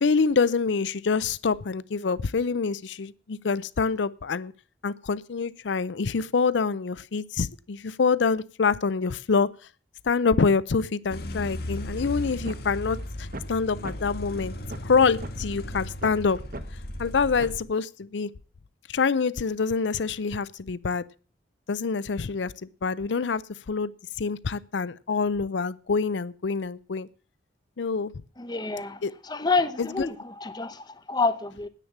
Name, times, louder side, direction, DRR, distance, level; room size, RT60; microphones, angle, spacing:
voice 1, 0.0-4.5 4.8-9.5 10.0-14.5 14.8-16.4 17.0-18.3 18.9-21.0 21.7-23.4 23.7-23.9 24.2-27.1 27.8-28.1 29.0-29.1 29.8-30.1, left 5 dB, 75° left, 0.5 m, -26 dB
sound 1, 11.1-17.6, left 1 dB, 55° left, 1.5 m, -36 dB
sound 2, 12.4-12.6 13.0-13.1 13.3-13.5 13.8-13.9 14.3-14.4 14.7-14.9 15.2-15.3 15.7-16.1 16.5-16.6 17.0-17.1 17.4-17.6, right 2 dB, 50° right, 1.0 m, -38 dB
voice 2, 28.4-29.0 29.3-30.1 30.4-31.7, left 3 dB, 20° left, 0.7 m, -27 dB
9.9 x 8.7 x 7.2 m
head